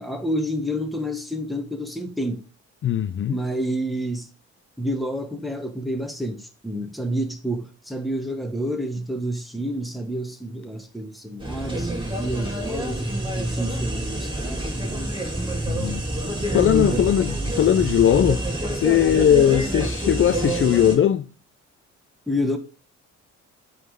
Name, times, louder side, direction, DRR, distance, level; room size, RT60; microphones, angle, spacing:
voice 1, 0.0-2.4 3.3-4.3 4.8-13.0 13.4-15.1 16.8-17.5 22.3-22.6, equal, ahead, 1.5 m, -29 dB
voice 2, 2.8-3.4 11.8-11.9 15.7-16.0 16.5-18.4 18.7-21.3, left 10 dB, 45° left, 0.5 m, -19 dB
sound 1, 11.4-21.0, right 1 dB, 15° right, 2.5 m, -27 dB
8.1 x 4.1 x 5.3 m
cardioid pair, 90°, 30 cm